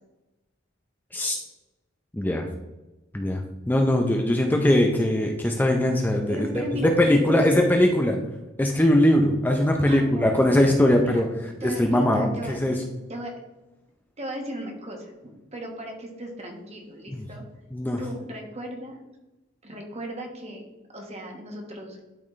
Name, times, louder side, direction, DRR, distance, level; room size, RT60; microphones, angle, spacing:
voice 1, 2.1-2.5 3.1-8.2 8.6-11.3 11.6-12.8 17.1-17.2 17.7-18.0, left 1 dB, 10° left, 2 dB, 0.5 m, -21 dB
voice 2, 6.3-7.7 9.9-10.3 11.0-13.3 14.2-17.4 18.0-19.0 19.6-20.6 20.9-22.0, equal, 35° right, 1 dB, 1.4 m, -36 dB
12.0 x 4.2 x 3.2 m, 1.0 s
head